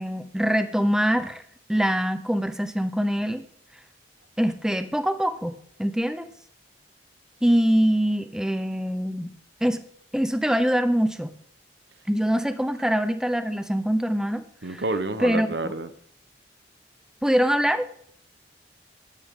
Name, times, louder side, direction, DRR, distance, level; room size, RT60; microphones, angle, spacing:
voice 1, 0.0-1.4 1.7-3.4 4.4-6.3 7.4-9.3 9.6-9.8 10.1-11.3 12.1-14.4 14.7-14.8 15.2-15.5 17.2-17.9, equal, 5° right, 0.7 m, -24 dB
voice 2, 14.6-15.9, right 2 dB, 75° right, 1.1 m, -29 dB
15.5 x 12.0 x 3.8 m
head